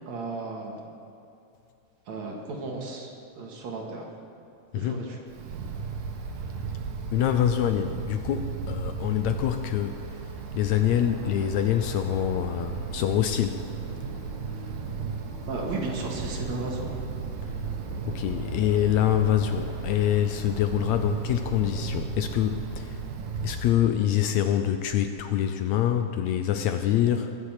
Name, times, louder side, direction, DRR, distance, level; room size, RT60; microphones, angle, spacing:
voice 1, 0.1-0.9 2.1-4.1 4.7-5.2 15.5-16.9 27.1-27.2, right 3 dB, 65° right, 0 dB, 3.0 m, -34 dB
Wind, 5.3-23.7, right 5 dB, 90° right, 2.7 m, -35 dB
voice 2, 7.1-10.0 10.5-13.6 18.1-23.0 23.4-27.3, left 11 dB, 75° left, 7 dB, 1.7 m, -25 dB
sound 1, 10.8-22.0, equal, 10° right, 2.9 m, -46 dB
22.5 x 7.5 x 6.5 m, 2.6 s
omnidirectional pair, 3.6 m